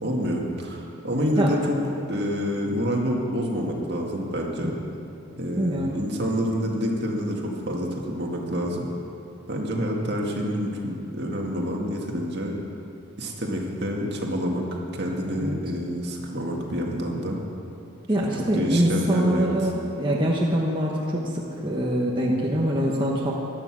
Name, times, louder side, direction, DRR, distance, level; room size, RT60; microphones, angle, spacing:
voice 1, 0.0-1.8 2.1-4.7 5.4-8.9 9.5-12.5 13.2-14.6 14.9-17.4 18.5-19.5, equal, 50° right, -1 dB, 2.0 m, -27 dB
voice 2, 5.6-6.0 15.4-15.6 18.1-23.3, equal, 25° right, -3 dB, 1.1 m, -24 dB
16.5 x 12.0 x 6.2 m, 2.8 s
head